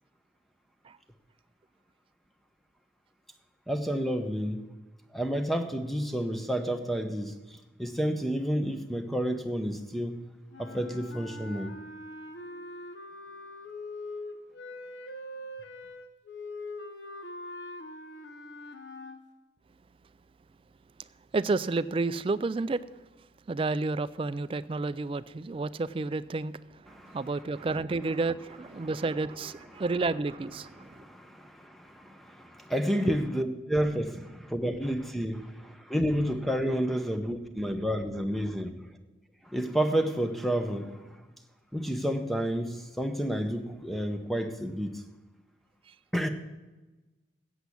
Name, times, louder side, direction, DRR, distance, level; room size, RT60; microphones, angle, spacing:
voice 1, 3.7-4.7 5.1-10.2 10.6-11.8 26.9-27.2 28.8-28.9 29.7-29.8 30.8-38.9 39.4-41.2 41.7-45.0 46.1-46.3, equal, ahead, 6 dB, 0.7 m, -30 dB
sound 1, 10.5-19.2, left 2 dB, 65° left, 0.9 m, -42 dB
voice 2, 21.3-22.8 23.5-31.1 33.1-33.2, right 3 dB, 30° right, 15 dB, 0.3 m, -31 dB
8.1 x 8.1 x 8.4 m, 1.2 s
head